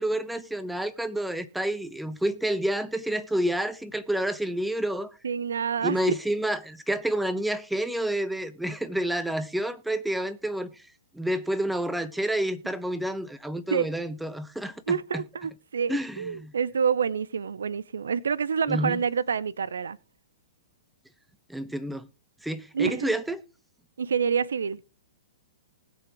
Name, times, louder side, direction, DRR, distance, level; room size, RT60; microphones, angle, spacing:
voice 1, 0.0-5.1 5.8-10.8 11.1-15.2 15.9-16.5 18.7-19.0 21.5-22.1 22.4-23.4, right 1 dB, 5° right, 0.9 m, -29 dB
voice 2, 5.2-6.0 13.7-13.9 14.9-20.0 22.7-23.1 24.0-24.8, right 6 dB, 80° right, 0.5 m, -27 dB
19.5 x 7.0 x 3.0 m
hypercardioid pair, 120°, 0 cm